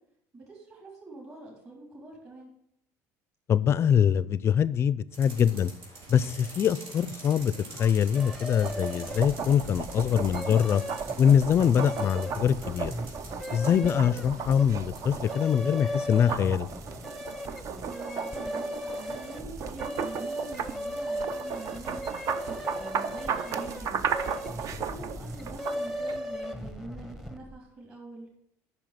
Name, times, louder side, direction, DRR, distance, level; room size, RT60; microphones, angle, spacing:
voice 1, 0.3-2.5 13.6-13.9 17.8-22.0 22.5-24.0 24.5-28.3, right 2 dB, 35° right, -2 dB, 3.6 m, -45 dB
voice 2, 3.5-5.7 6.1-10.8 11.2-12.9 13.5-16.7, left 8 dB, 35° left, 19 dB, 0.4 m, -24 dB
sound 1, 5.1-15.1, right 2 dB, 80° right, 3.9 m, -46 dB
sound 2, 8.1-27.6, equal, 5° right, 0.9 m, -37 dB
sound 3, 8.6-26.2, right 6 dB, 50° right, 0.7 m, -36 dB
8.8 x 6.0 x 7.8 m, 0.74 s
cardioid pair, 125°, 7 cm